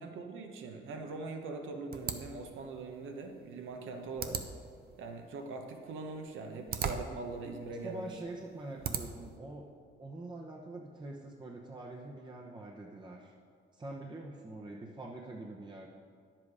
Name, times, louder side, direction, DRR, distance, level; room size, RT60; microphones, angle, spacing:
voice 1, 0.0-4.4 5.0-8.1, right 3 dB, 80° right, 4 dB, 1.2 m, -42 dB
sound 1, 1.9-9.4, right 6 dB, 50° right, 0.8 m, -42 dB
voice 2, 7.8-13.3 13.7-15.9, right 2 dB, 25° right, -1 dB, 0.9 m, -45 dB
10.5 x 7.6 x 4.9 m, 2.1 s
cardioid pair, 90°, 20 cm